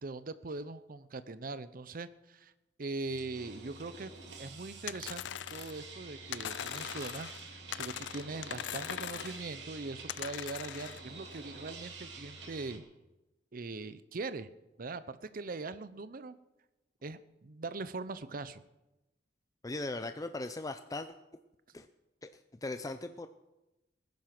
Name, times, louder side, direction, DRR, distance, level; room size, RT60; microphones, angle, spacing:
voice 1, 0.0-2.5 2.8-4.1 4.4-12.8 13.5-14.5 14.8-16.3 17.0-18.6, right 3 dB, 55° right, 14 dB, 0.7 m, -41 dB
sound 1, 3.0-12.8, right 3 dB, 75° right, 2.8 m, -48 dB
sound 2, 4.9-5.8 6.3-7.4 7.7-9.4 10.1-11.0, left 10 dB, 90° left, 0.4 m, -40 dB
voice 2, 19.6-21.1 21.7-21.9 22.2-22.3 22.6-23.3, left 2 dB, 20° left, 9 dB, 0.5 m, -38 dB
20.0 x 10.5 x 6.0 m, 0.98 s
head